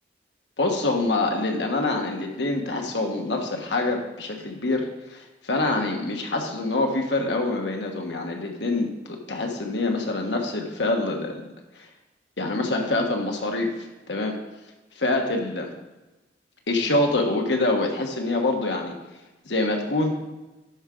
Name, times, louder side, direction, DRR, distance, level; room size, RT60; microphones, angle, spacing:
voice 1, 0.6-11.4 12.4-13.7 14.1-14.4 15.0-15.7 16.7-18.9 19.5-20.1, left 2 dB, 80° left, 2 dB, 1.2 m, -25 dB
11.5 x 5.0 x 3.7 m, 1.1 s
head